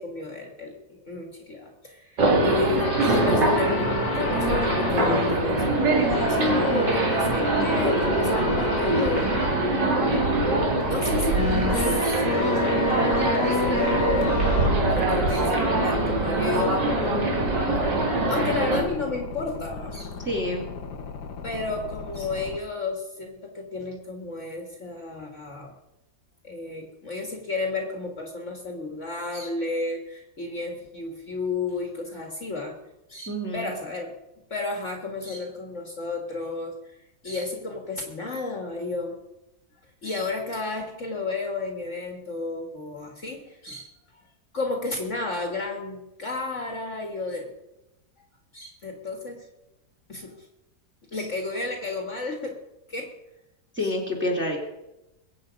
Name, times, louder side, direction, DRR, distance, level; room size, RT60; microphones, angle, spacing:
voice 1, 0.0-9.3 10.8-14.4 14.9-17.2 18.3-20.2 21.4-25.7 26.4-32.7 33.1-34.1 34.5-37.0 37.2-39.2 40.0-43.9 44.5-47.5 48.5-49.5 50.1-50.5 51.1-52.6 52.9-53.1 53.8-53.9, left 3 dB, 45° left, 2 dB, 2.1 m, -32 dB
sound 1, 2.2-18.8, right 2 dB, 90° right, 3.0 m, -23 dB
sound 2, 2.8-5.3 6.1-9.5 10.1-10.2 11.3-22.6, left 5 dB, 80° left, 1.9 m, -32 dB
voice 2, 20.2-20.6 33.3-33.7 53.7-54.6, left 1 dB, 5° right, -1 dB, 2.3 m, -27 dB
22.0 x 8.5 x 5.2 m, 0.95 s
omnidirectional pair, 1.8 m